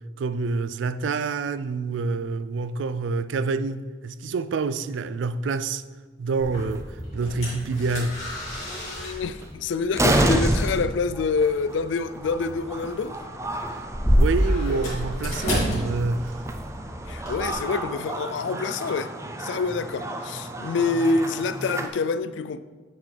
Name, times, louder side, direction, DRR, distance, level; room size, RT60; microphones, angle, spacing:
voice 1, 0.2-5.8 6.2-8.2 13.7-13.8 14.1-16.4, right 4 dB, 80° right, 0.3 m, -27 dB
sound 1, 6.4-17.5, equal, 35° left, 2.5 m, -29 dB
sound 2, 6.6-6.8 7.7-7.8 8.1-8.2 9.4-9.5 9.9-21.9, right 1 dB, 15° right, 0.4 m, -30 dB
voice 2, 8.7-13.2 17.1-19.1 19.4-22.6, left 4 dB, 80° left, 0.3 m, -26 dB
8.9 x 6.1 x 3.3 m
head